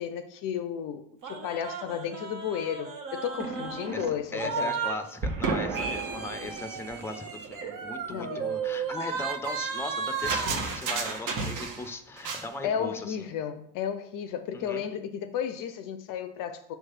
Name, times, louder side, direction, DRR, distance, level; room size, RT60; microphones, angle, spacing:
voice 1, 0.0-4.8 8.1-8.5 12.6-16.7, left 8 dB, 45° left, 0.6 m, -33 dB
sound 1, 1.2-5.0 5.2-11.9 12.2-12.5, right 5 dB, 45° right, 1.2 m, -33 dB
voice 2, 3.9-13.3 14.5-14.8, left 2 dB, 5° left, 0.6 m, -38 dB
6.5 x 3.2 x 5.9 m
figure-of-eight pair, 55°, 45 cm